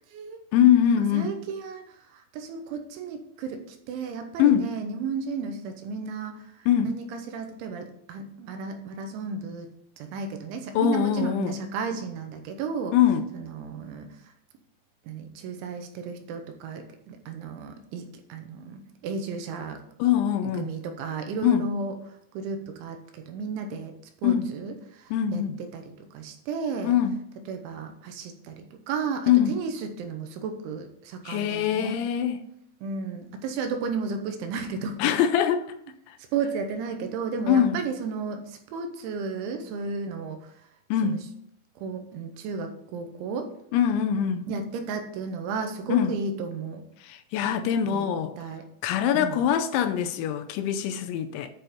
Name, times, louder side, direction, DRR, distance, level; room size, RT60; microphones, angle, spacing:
voice 1, 0.5-1.3 4.4-4.7 6.7-7.0 10.7-11.6 12.9-13.3 20.0-20.7 21.4-21.7 24.2-24.5 25.1-25.6 26.8-27.2 29.3-29.6 31.3-32.4 35.0-35.6 37.5-37.9 40.9-41.2 43.7-44.5 45.9-46.1 47.0-48.3 48.8-51.5, left 9 dB, 85° left, 3.0 m, -23 dB
voice 2, 1.1-9.7 10.0-12.9 13.3-14.1 15.1-19.8 20.4-21.9 22.3-24.0 24.2-25.4 25.7-26.9 27.5-32.1 32.8-35.1 36.3-40.4 41.0-41.2 41.8-43.5 44.5-46.8 47.9-48.1 48.4-48.7 49.1-49.4, right 5 dB, 85° right, 3.3 m, -33 dB
9.7 x 4.4 x 5.1 m
omnidirectional pair, 5.4 m